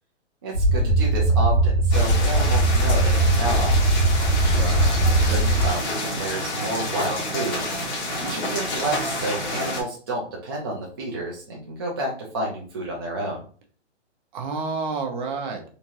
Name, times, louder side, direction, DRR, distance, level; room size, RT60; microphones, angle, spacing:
voice 1, 0.4-3.8 5.3-7.6 8.1-13.4, right 2 dB, 20° right, -3 dB, 0.4 m, -30 dB
sound 1, 0.5-5.7, right 2 dB, 70° left, 1.7 m, -20 dB
sound 2, 1.9-9.8, left 1 dB, 40° left, 1.3 m, -29 dB
voice 2, 4.6-5.5 14.3-15.7, right 4 dB, 40° right, 4 dB, 0.9 m, -30 dB
3.7 x 2.6 x 3.0 m, 0.41 s
hypercardioid pair, 150°, 36 cm